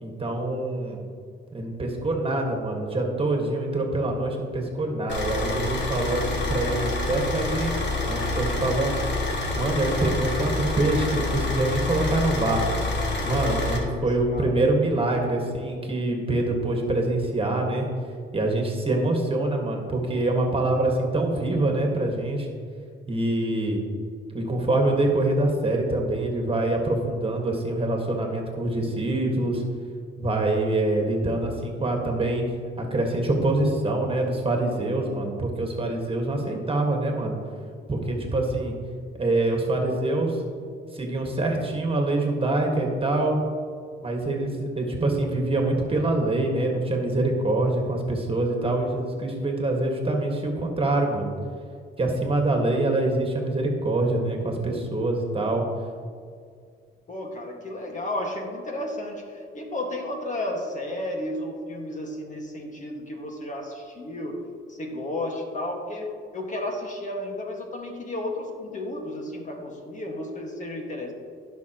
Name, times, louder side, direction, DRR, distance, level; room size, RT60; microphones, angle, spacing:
voice 1, 0.0-1.0 1.5-7.7 8.0-9.0 9.6-12.6 13.2-17.9 18.3-22.5 23.1-23.8 24.3-29.6 30.2-32.4 32.8-37.4 37.9-38.8 39.2-40.4 40.9-43.4 44.0-51.3 52.0-55.7, right 2 dB, 30° right, 1 dB, 1.7 m, -25 dB
Car / Idling, 5.1-13.8, left 2 dB, 65° left, 2.4 m, -27 dB
voice 2, 13.3-14.5 57.1-64.4 64.7-71.1, left 1 dB, 40° left, 1 dB, 1.8 m, -33 dB
16.5 x 5.9 x 3.0 m, 2.2 s
cardioid pair, 90°, 20 cm